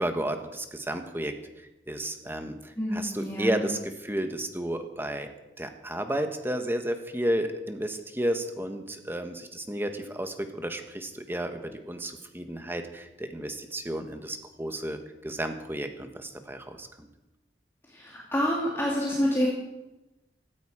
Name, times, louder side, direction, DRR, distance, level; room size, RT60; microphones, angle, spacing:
voice 1, 0.0-1.3 1.9-5.3 5.6-16.9, right 1 dB, 15° right, 7 dB, 1.4 m, -32 dB
voice 2, 2.8-3.6 17.9-19.5, equal, 15° left, -4 dB, 2.5 m, -27 dB
16.5 x 14.0 x 5.0 m, 1.0 s
head